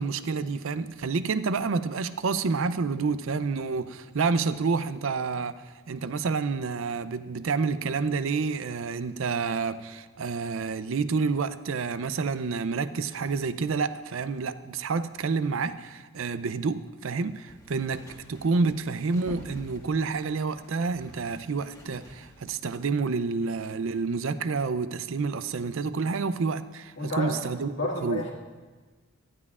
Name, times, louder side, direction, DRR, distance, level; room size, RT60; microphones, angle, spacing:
voice 1, 0.0-18.0 18.3-27.7 28.0-28.2, right 4 dB, 65° right, 0.5 m, -29 dB
sound 1, 17.5-22.9, equal, 15° left, 1.4 m, -48 dB
voice 2, 27.0-27.4 27.7-28.3, left 2 dB, 55° left, 1.8 m, -30 dB
17.5 x 12.0 x 2.4 m
head